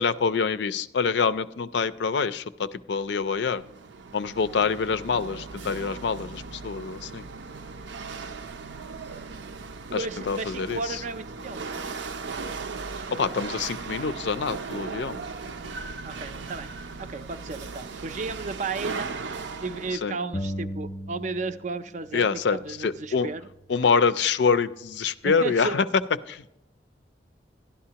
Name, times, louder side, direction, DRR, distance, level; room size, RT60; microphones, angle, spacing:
voice 1, 0.0-3.6 4.1-7.2 9.9-11.0 13.1-15.2 19.9-20.2 22.1-23.3 23.7-25.8 26.3-26.6, left 5 dB, 75° left, 14 dB, 0.4 m, -26 dB
Chatter / Hiss / Rattle, 3.1-20.0, right 4 dB, 90° right, 0.6 m, -37 dB
voice 2, 9.9-11.8 16.0-16.7 17.0-19.1 19.6-23.5 25.2-25.8, right 3 dB, 40° right, 11 dB, 0.4 m, -34 dB
sound 1, 20.3-21.8 22.1-23.9, equal, 25° left, 0.5 m, -37 dB
12.0 x 11.0 x 2.9 m, 0.83 s
head